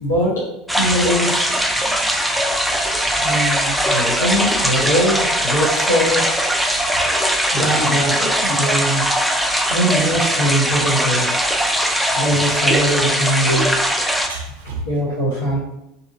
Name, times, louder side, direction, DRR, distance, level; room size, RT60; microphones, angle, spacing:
voice 1, 0.0-0.5 0.7-1.6 3.2-6.2 7.5-9.1 9.7-11.5 11.8-13.7 14.9-15.6, equal, 80° left, -9 dB, 0.8 m, -21 dB
sound 1, 0.7-14.3, equal, ahead, 0.3 m, -20 dB
voice 2, 6.9-7.8 9.5-9.6 11.8-12.0 14.3-14.9, right 3 dB, 75° right, 0 dB, 0.6 m, -35 dB
2.7 x 2.5 x 2.5 m, 0.88 s
figure-of-eight pair, 75°, 0 cm